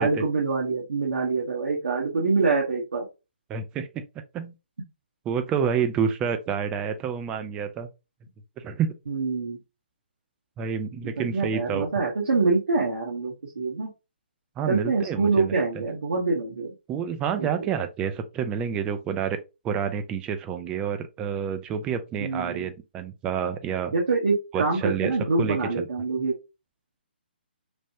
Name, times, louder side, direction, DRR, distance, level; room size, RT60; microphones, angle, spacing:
voice 1, 0.0-3.0 9.1-9.6 11.0-13.9 14.7-16.7 17.3-17.7 22.2-22.7 23.9-26.3, right 4 dB, 70° right, 0.9 m, -25 dB
voice 2, 3.5-4.0 4.3-4.5 5.3-7.9 8.6-8.9 10.6-11.9 14.6-15.9 16.9-19.4 19.6-23.9 24.5-25.9, right 7 dB, 15° right, 0.3 m, -29 dB
3.2 x 2.1 x 2.6 m
figure-of-eight pair, 145°, 6 cm